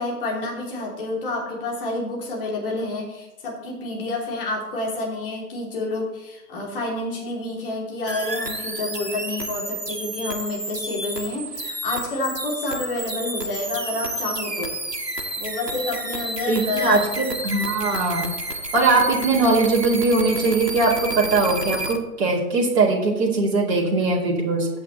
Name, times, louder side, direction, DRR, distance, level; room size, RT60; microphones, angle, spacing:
voice 1, 0.0-14.7 15.4-17.0, left 2 dB, 35° left, -2 dB, 3.2 m, -29 dB
sound 1, 8.1-22.0, right 2 dB, 90° right, 1.6 m, -31 dB
voice 2, 16.5-18.3 18.7-24.7, right 3 dB, 40° right, -4 dB, 2.6 m, -21 dB
15.0 x 8.0 x 3.2 m, 1.0 s
figure-of-eight pair, 135°, 48 cm